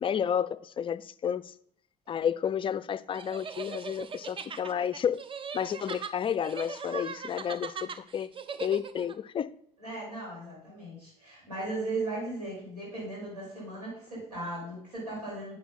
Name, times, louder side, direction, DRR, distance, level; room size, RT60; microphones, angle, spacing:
voice 1, 0.0-1.5 2.1-5.2 5.5-8.3 8.6-9.5, left 8 dB, 25° left, 0.4 m, -31 dB
sound 1, 3.1-9.1, right 6 dB, 25° right, 0.7 m, -40 dB
voice 2, 9.8-15.5, right 2 dB, 85° right, 3.9 m, -37 dB
10.0 x 4.9 x 4.2 m
figure-of-eight pair, 55°, 19 cm